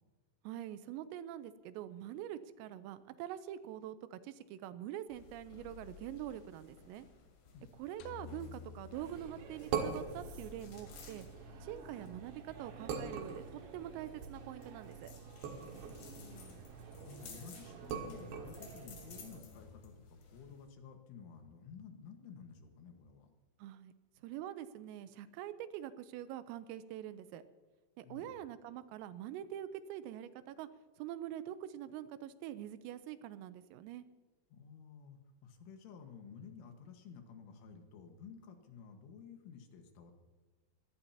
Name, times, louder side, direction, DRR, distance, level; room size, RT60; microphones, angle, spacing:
voice 1, 0.4-7.1 7.8-11.3 11.6-15.1 23.6-23.9 24.2-27.4 28.0-30.7 31.0-34.0, right 11 dB, 90° right, 12 dB, 3.4 m, -45 dB
sound 1, 5.1-20.7, left 6 dB, 55° left, 4.3 m, -57 dB
sound 2, 8.0-10.3, left 8 dB, 90° left, 2.3 m, -52 dB
sound 3, 8.9-19.4, right 6 dB, 65° right, 3.5 m, -44 dB
voice 2, 15.5-23.3 28.0-28.4 34.5-40.1, left 6 dB, 75° left, 4 dB, 3.8 m, -53 dB
23.5 x 17.0 x 2.9 m, 1.3 s
omnidirectional pair, 6.0 m